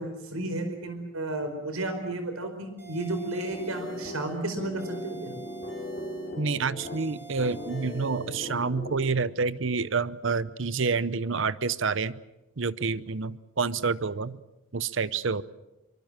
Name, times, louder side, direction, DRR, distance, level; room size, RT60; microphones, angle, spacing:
voice 1, 0.0-5.3, right 1 dB, 80° right, 8 dB, 4.7 m, -33 dB
sound 1, 2.8-4.4 4.8-6.4 6.8-8.4, right 2 dB, 10° right, 7.4 m, -48 dB
sound 2, 3.5-9.5, equal, 40° left, 3.2 m, -39 dB
voice 2, 6.4-12.2 12.6-14.4 14.7-15.4, right 4 dB, 60° right, 17 dB, 0.8 m, -28 dB
24.5 x 23.5 x 7.4 m, 0.95 s
head